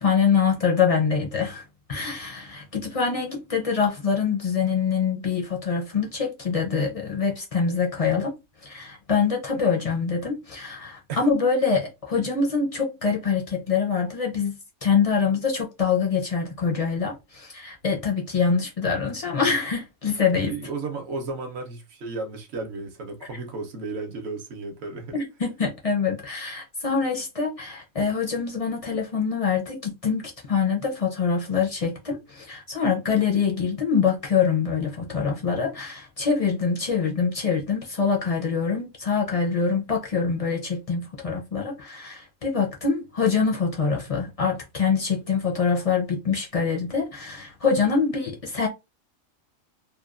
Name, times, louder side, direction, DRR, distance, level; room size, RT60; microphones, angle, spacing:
voice 1, 0.0-1.6 1.9-14.6 14.8-20.5 25.1-48.7, left 5 dB, 50° left, 0.4 m, -25 dB
voice 2, 20.3-25.2, right 3 dB, 60° right, 0.9 m, -34 dB
2.9 x 2.2 x 2.4 m
omnidirectional pair, 1.3 m